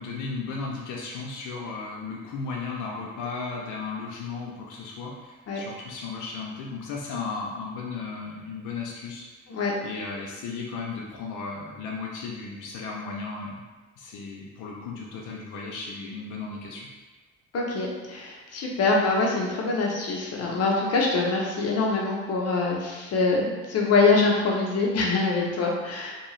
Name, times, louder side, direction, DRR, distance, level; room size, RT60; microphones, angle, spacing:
voice 1, 0.0-9.3 9.8-13.6 14.0-16.9, left 4 dB, 90° left, -2 dB, 0.5 m, -35 dB
voice 2, 17.5-26.2, left 3 dB, 55° left, -2 dB, 0.7 m, -24 dB
2.7 x 2.3 x 3.0 m, 1.3 s
cardioid pair, 90°, 30 cm